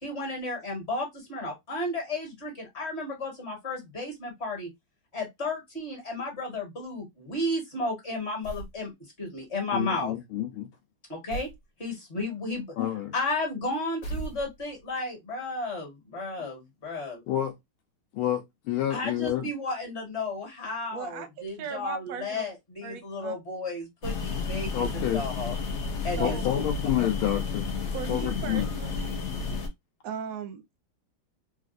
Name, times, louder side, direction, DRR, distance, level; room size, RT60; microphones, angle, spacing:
voice 1, 0.0-4.7 5.1-8.9 9.2-10.1 11.1-11.5 11.8-12.6 13.1-17.2 18.9-25.6 26.0-26.6 27.0-27.1, left 2 dB, 35° left, 1.6 m, -33 dB
sound 1, 8.4-8.8 11.3-11.6 14.0-14.8, right 2 dB, 50° left, 1.5 m, -37 dB
voice 2, 9.7-10.7 12.8-13.1 17.3-17.5 18.1-19.5 24.7-25.2 26.2-27.7 28.1-28.7, left 11 dB, 85° left, 1.5 m, -29 dB
voice 3, 20.9-22.4 22.8-23.4 26.2-26.5 27.9-29.2 30.0-30.8, right 7 dB, 65° right, 0.9 m, -38 dB
sound 2, 24.0-29.7, left 4 dB, 70° left, 0.6 m, -31 dB
3.9 x 2.5 x 2.4 m
omnidirectional pair, 2.3 m